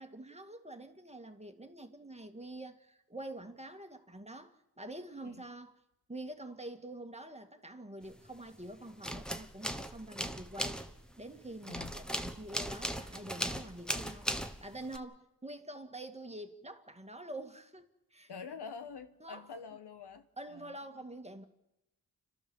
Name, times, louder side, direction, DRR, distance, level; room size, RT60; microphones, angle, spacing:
voice 1, 0.0-5.7 6.1-10.8 11.2-14.3 14.6-18.3 19.2-19.5 20.4-21.4, right 1 dB, 15° right, 1.9 m, -46 dB
sound 1, 8.1-8.6 8.9-15.0, equal, ahead, 1.3 m, -38 dB
voice 2, 11.7-12.0 18.3-21.1, left 5 dB, 85° left, 1.4 m, -47 dB
30.0 x 13.0 x 7.1 m
wide cardioid pair, 70°, 39 cm